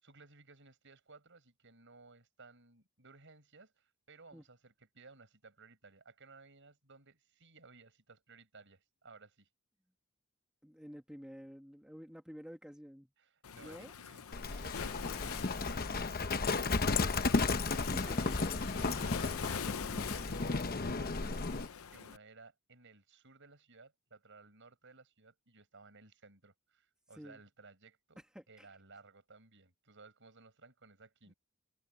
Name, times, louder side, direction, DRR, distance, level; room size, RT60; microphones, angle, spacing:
voice 1, 0.0-9.5 13.2-17.3 18.0-21.4 21.9-28.2 28.5-31.3, right 4 dB, 60° right, 7.0 m, -59 dB
voice 2, 10.6-13.1 13.6-14.0 17.5-18.4 27.1-27.4 28.2-28.7 31.3-31.4, equal, 5° right, 1.7 m, -50 dB
Waves surf, 13.4-22.2, left 7 dB, 75° left, 0.7 m, -44 dB
Livestock farm animals working animals, 14.3-21.7, left 3 dB, 45° left, 1.0 m, -34 dB
head